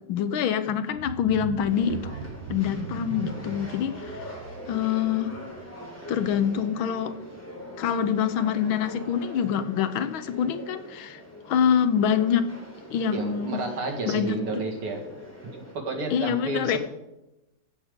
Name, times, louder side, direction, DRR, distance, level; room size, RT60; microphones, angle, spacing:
voice 1, 0.1-2.1 2.5-4.3 4.7-5.3 6.1-7.2 7.8-11.2 11.5-12.5 12.9-13.6 14.0-14.6 16.1-16.8, left 8 dB, 75° left, 11 dB, 1.5 m, -25 dB
sound 1, 0.9-6.7 7.0-7.3 7.6-7.7, right 6 dB, 65° right, 1.2 m, -40 dB
sound 2, 1.6-15.7, equal, 5° left, 2.9 m, -43 dB
voice 2, 13.1-15.0 15.4-16.8, right 3 dB, 85° right, 1 dB, 2.9 m, -31 dB
14.5 x 7.9 x 5.1 m, 0.95 s
omnidirectional pair, 2.3 m